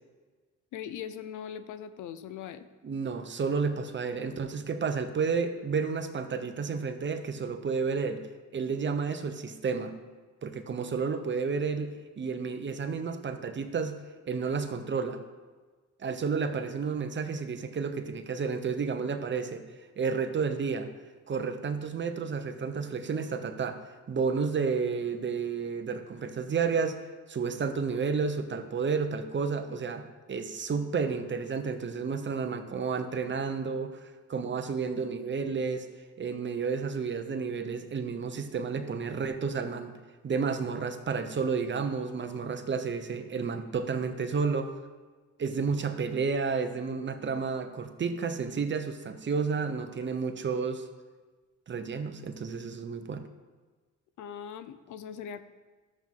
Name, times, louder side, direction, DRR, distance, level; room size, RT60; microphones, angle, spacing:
voice 1, 0.7-2.7 54.2-55.4, left 8 dB, 80° left, 12 dB, 0.6 m, -40 dB
voice 2, 2.8-8.3 8.5-10.0 10.4-14.0 14.3-15.2 16.0-19.6 20.0-20.9 21.3-23.8 24.1-27.0 27.3-35.9 36.2-40.0 40.2-44.8 45.4-50.9 51.7-53.3, right 5 dB, 40° right, 7 dB, 0.9 m, -31 dB
12.0 x 7.6 x 3.7 m, 1.4 s
cardioid pair, 90°, 30 cm